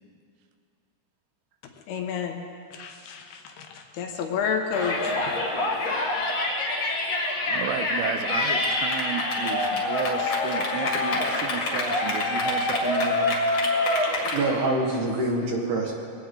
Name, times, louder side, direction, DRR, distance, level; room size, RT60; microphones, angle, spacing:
voice 1, 1.9-2.4 2.7-5.2, left 6 dB, 75° left, 4 dB, 2.8 m, -30 dB
Yell, 4.7-14.4, left 2 dB, 45° left, 2.7 m, -26 dB
voice 2, 7.5-13.4 13.7-14.0, right 8 dB, 90° right, 6 dB, 3.3 m, -33 dB
voice 3, 14.0-15.9, right 2 dB, 60° right, 0 dB, 2.5 m, -26 dB
22.0 x 17.0 x 3.8 m, 2.4 s
omnidirectional pair, 5.1 m